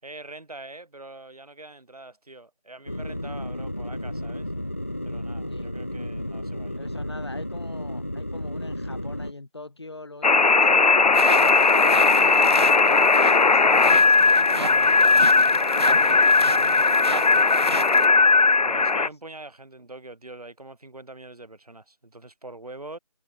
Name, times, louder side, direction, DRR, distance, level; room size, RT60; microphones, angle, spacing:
voice 1, 0.0-4.5 5.0-6.8 15.9-16.6 17.1-17.6 18.7-23.0, right 2 dB, 70° right, 6.5 m, -43 dB
sound 1, 2.9-9.3, left 1 dB, 20° left, 0.9 m, -33 dB
voice 2, 6.8-11.6 11.8-13.2 13.4-15.1 16.1-17.2 18.6-19.1, left 2 dB, 40° left, 2.6 m, -43 dB
sound 2, 10.2-19.1, left 4 dB, 80° left, 0.8 m, -18 dB
sound 3, 11.1-18.1, right 2 dB, 40° right, 1.8 m, -34 dB
figure-of-eight pair, 180°, 20 cm